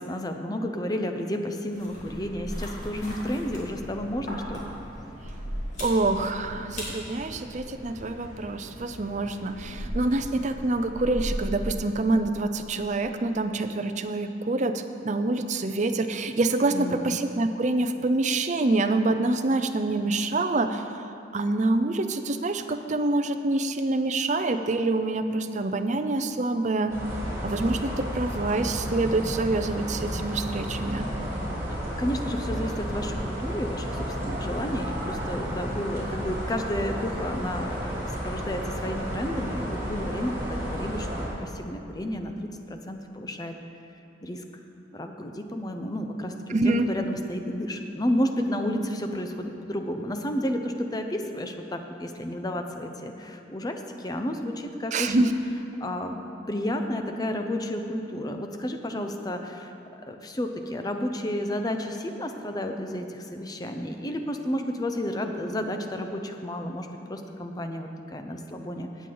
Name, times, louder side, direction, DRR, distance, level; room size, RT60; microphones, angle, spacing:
voice 1, 0.0-4.7 16.7-17.1 31.7-43.5 44.2-44.4 44.9-55.3 55.8-59.7 60.1-68.9, left 1 dB, 20° left, 5 dB, 0.6 m, -31 dB
sound 1, 1.7-12.1, equal, 40° left, 2.7 m, -37 dB
voice 2, 5.8-20.8 21.3-27.0 27.4-31.1 46.5-46.9 54.9-55.3, right 2 dB, 40° right, 8 dB, 0.5 m, -26 dB
sound 2, 26.9-41.3, equal, 15° right, 2.5 m, -32 dB
16.5 x 8.4 x 3.9 m, 2.9 s
head